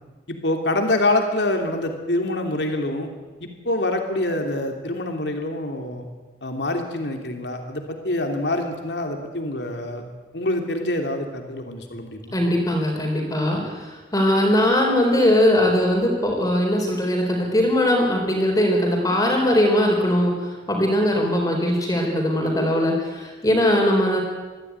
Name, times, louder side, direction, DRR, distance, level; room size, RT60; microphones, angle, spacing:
voice 1, 0.3-3.1 3.4-6.1 6.4-10.0 10.3-12.3, left 1 dB, 70° left, 4 dB, 3.0 m, -25 dB
voice 2, 12.3-24.2, left 1 dB, 20° left, 0 dB, 4.2 m, -20 dB
23.0 x 15.0 x 9.5 m, 1.3 s
head